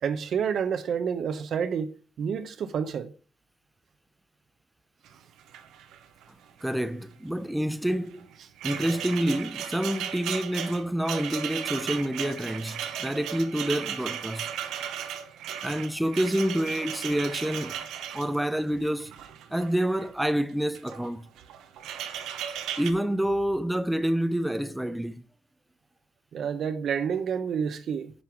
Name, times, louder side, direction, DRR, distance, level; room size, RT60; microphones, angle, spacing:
voice 1, 0.0-3.1 26.3-28.1, right 7 dB, 65° right, 0.9 m, -29 dB
sound 1, 5.1-5.2 5.4-6.2 6.5-6.8 7.9-20.1 20.6-21.1 21.4-22.9, right 9 dB, 85° right, 1.0 m, -36 dB
voice 2, 6.6-8.3 8.6-14.5 15.6-17.9 18.1-19.1 19.5-21.3 22.8-25.2, right 1 dB, 5° right, 0.7 m, -28 dB
10.5 x 5.6 x 4.6 m
cardioid pair, 90°, 0 cm